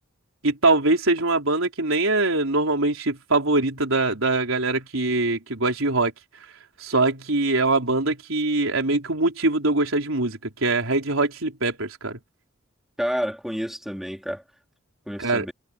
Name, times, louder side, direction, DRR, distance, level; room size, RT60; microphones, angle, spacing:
voice 1, 0.4-6.1 6.8-12.2 15.2-15.5, right 2 dB, 85° right, 3.9 m, -23 dB
voice 2, 13.0-14.4 15.1-15.5, equal, ahead, 3.9 m, -29 dB
head